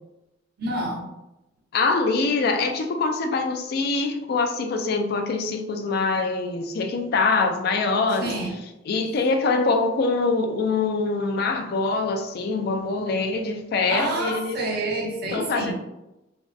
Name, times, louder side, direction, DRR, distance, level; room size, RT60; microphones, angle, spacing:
voice 1, 0.6-1.1 8.2-8.5 13.9-15.7, right 1 dB, 55° right, -1 dB, 0.6 m, -28 dB
voice 2, 1.7-8.3 8.9-14.6 15.3-15.7, left 3 dB, 55° left, 4 dB, 0.3 m, -24 dB
2.6 x 2.2 x 2.2 m, 0.93 s
head